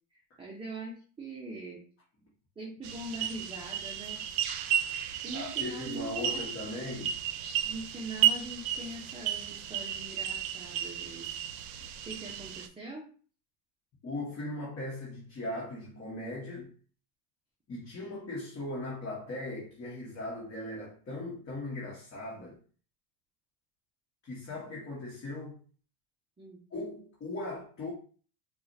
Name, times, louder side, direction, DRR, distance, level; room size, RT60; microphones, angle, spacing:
voice 1, 0.4-1.8 2.6-4.2 5.2-6.4 7.6-11.3 12.1-13.1 26.4-26.6, right 2 dB, 10° right, 0.6 m, -42 dB
sound 1, 2.8-12.7, right 10 dB, 65° right, 0.6 m, -33 dB
voice 2, 5.3-7.2 14.0-16.7 17.7-22.6 24.2-25.6 26.7-27.9, left 2 dB, 25° left, 1.3 m, -38 dB
4.8 x 2.4 x 2.7 m
supercardioid pair, 120°, 49 cm